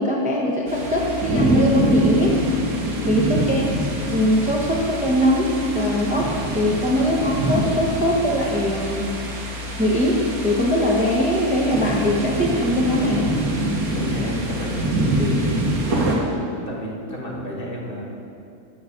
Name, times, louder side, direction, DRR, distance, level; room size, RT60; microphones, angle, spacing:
voice 1, 0.0-2.4 3.1-3.6 4.1-9.1 9.8-13.3, equal, 5° right, -3 dB, 0.7 m, -21 dB
sound 1, 0.7-16.2, right 1 dB, 85° right, 1.8 m, -25 dB
voice 2, 2.9-3.4 13.9-16.0 16.7-18.0, left 1 dB, 40° left, -2 dB, 1.4 m, -33 dB
7.2 x 6.2 x 7.0 m, 2.6 s
omnidirectional pair, 1.5 m